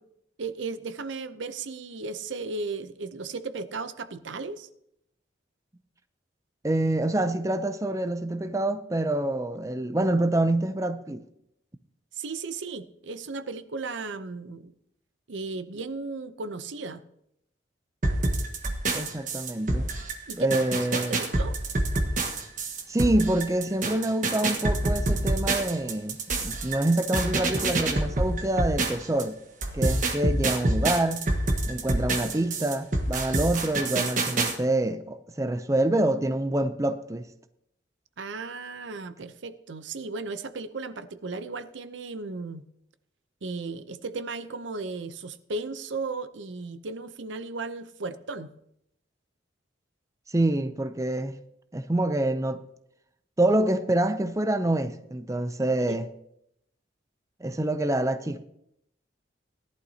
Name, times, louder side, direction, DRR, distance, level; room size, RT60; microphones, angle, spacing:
voice 1, 0.4-4.7 12.1-14.7 15.3-17.0 20.3-21.6 38.2-42.6 43.4-48.5 55.9-56.0, right 3 dB, 75° right, 0.7 m, -35 dB
voice 2, 6.6-11.2 18.9-19.9 20.4-21.2 22.9-29.4 29.7-31.3 31.7-37.3 50.3-51.4 51.7-52.6 53.4-56.1 57.4-58.5, right 1 dB, 15° right, 0.5 m, -26 dB
sound 1, 18.0-29.2 29.6-34.5, right 2 dB, 45° right, 1.3 m, -27 dB
17.5 x 11.5 x 2.8 m
head